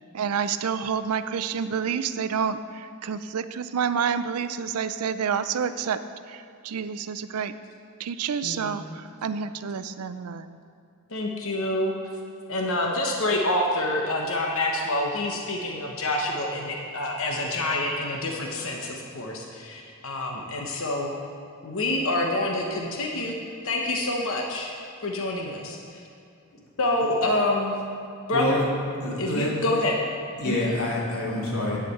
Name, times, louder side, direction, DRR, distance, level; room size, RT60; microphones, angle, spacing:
voice 1, 0.1-6.0 6.3-7.5 8.0-10.6, right 7 dB, 85° right, 12 dB, 0.5 m, -29 dB
voice 2, 8.4-8.9 11.1-11.9 12.5-21.1 21.6-23.4 23.6-24.7 25.0-25.8 26.8-27.7 28.3-28.6 29.2-29.9 30.4-30.8, left 1 dB, 65° left, 0 dB, 1.0 m, -27 dB
voice 3, 28.3-28.7 29.0-29.7 30.4-31.8, left 1 dB, 85° left, -5 dB, 2.7 m, -27 dB
9.9 x 5.0 x 7.8 m, 2.5 s
head